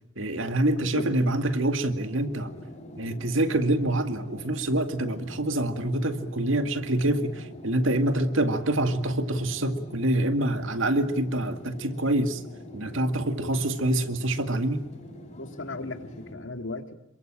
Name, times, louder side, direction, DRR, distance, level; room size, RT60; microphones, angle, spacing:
voice 1, 0.2-2.5 3.0-12.4 12.7-14.8, right 1 dB, 75° right, 8 dB, 2.1 m, -26 dB
voice 2, 0.8-1.2 15.4-16.9, left 2 dB, 70° left, 7 dB, 2.3 m, -36 dB
sound 1, 2.0-16.3, equal, 35° left, 8.0 m, -44 dB
27.5 x 23.0 x 8.9 m, 0.82 s
head